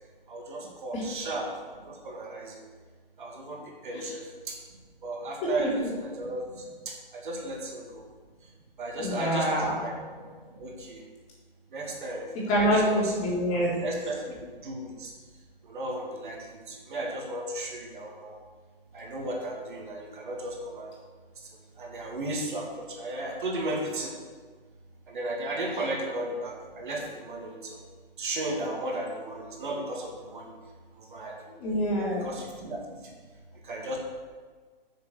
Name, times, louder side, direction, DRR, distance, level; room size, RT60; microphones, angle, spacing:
voice 1, 0.3-1.5 1.9-2.6 3.2-4.6 5.0-7.9 8.8-10.3 10.5-11.0 11.7-13.1 13.8-14.2 14.6-15.1 15.7-18.3 18.9-20.9 21.8-24.1 25.1-27.8 28.2-30.5 31.0-31.3 32.0-32.8 33.6-34.0, right 1 dB, 55° right, 0 dB, 2.4 m, -35 dB
voice 2, 5.4-5.9 9.0-9.7 12.5-13.7 31.5-32.3, equal, 25° left, -5 dB, 3.8 m, -26 dB
9.4 x 6.8 x 7.1 m, 1.5 s
figure-of-eight pair, 125°, 30 cm